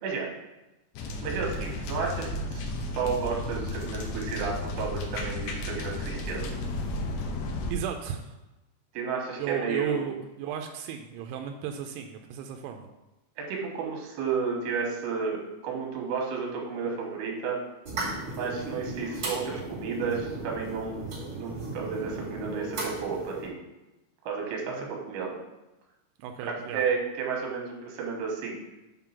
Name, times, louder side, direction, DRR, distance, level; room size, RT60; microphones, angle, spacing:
sound 1, 1.0-7.7, left 2 dB, 75° left, 2.8 m, -33 dB
voice 1, 1.2-2.7 3.0-6.5 8.9-10.1 13.4-17.6 18.3-21.1 21.3-23.5 24.2-25.4 26.4-28.6, right 5 dB, 70° right, 0 dB, 3.3 m, -32 dB
voice 2, 7.7-8.4 9.4-12.9 24.7-24.9 26.2-26.8, right 8 dB, 90° right, 4 dB, 3.0 m, -34 dB
sound 2, 17.8-23.5, right 2 dB, 40° right, 1.8 m, -36 dB
7.9 x 3.8 x 5.7 m, 1.0 s
omnidirectional pair, 5.3 m